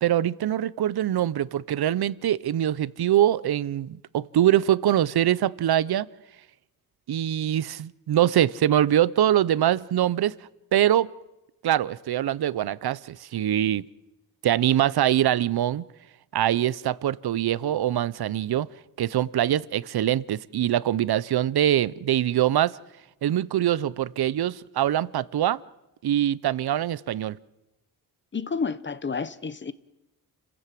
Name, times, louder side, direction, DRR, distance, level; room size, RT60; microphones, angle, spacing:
voice 1, 0.0-6.1 7.1-10.3 10.7-11.1 11.6-13.8 14.4-15.8 16.3-18.7 19.0-22.8 23.2-25.6 26.0-27.4, right 11 dB, 90° right, 0.7 m, -23 dB
voice 2, 28.3-29.7, left 5 dB, 30° left, 0.8 m, -30 dB
29.5 x 16.0 x 7.6 m
wide cardioid pair, 150°, 37 cm